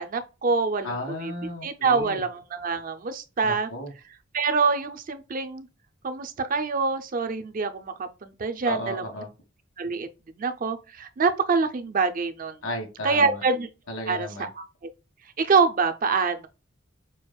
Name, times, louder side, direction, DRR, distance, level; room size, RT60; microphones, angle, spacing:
voice 1, 0.0-1.3 1.6-3.7 4.3-5.7 6.0-9.0 9.8-10.1 10.4-12.6 13.0-13.7 14.1-14.6 15.4-16.5, right 4 dB, 45° right, 0.5 m, -25 dB
voice 2, 0.8-2.2 3.4-3.9 8.6-9.3 12.6-13.4 13.9-14.5, left 1 dB, 90° left, 1.6 m, -34 dB
6.2 x 2.4 x 2.2 m
head